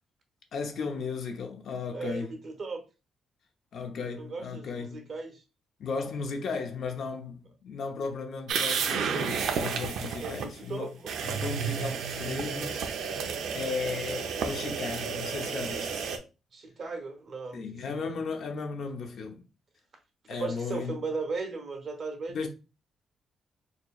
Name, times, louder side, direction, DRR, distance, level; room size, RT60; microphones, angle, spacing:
voice 1, 0.5-2.3 3.7-5.1 5.8-11.0 11.2-12.8 13.5-16.1 17.5-19.4 20.3-21.0 22.3-22.5, left 5 dB, 60° left, 0.7 m, -35 dB
voice 2, 1.9-2.8 4.2-5.4 10.2-11.1 16.5-17.6 18.0-18.2 20.3-22.5, right 4 dB, 40° right, 0.8 m, -37 dB
sound 1, 8.5-10.5 11.1-16.2, right 6 dB, 80° right, 0.5 m, -31 dB
4.4 x 2.9 x 2.3 m
cardioid pair, 160°, 0 cm